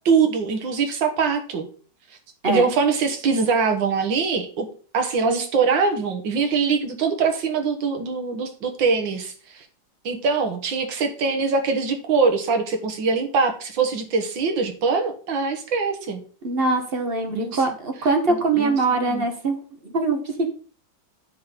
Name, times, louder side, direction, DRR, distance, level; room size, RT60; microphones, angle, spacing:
voice 1, 0.1-1.7 2.5-4.7 4.9-9.7 10.1-16.2 17.3-17.8 18.3-19.3, right 5 dB, 80° right, 6 dB, 2.0 m, -23 dB
voice 2, 16.4-19.6 19.9-20.2, right 3 dB, 40° right, 5 dB, 0.9 m, -22 dB
8.7 x 3.7 x 5.1 m, 0.41 s
omnidirectional pair, 2.0 m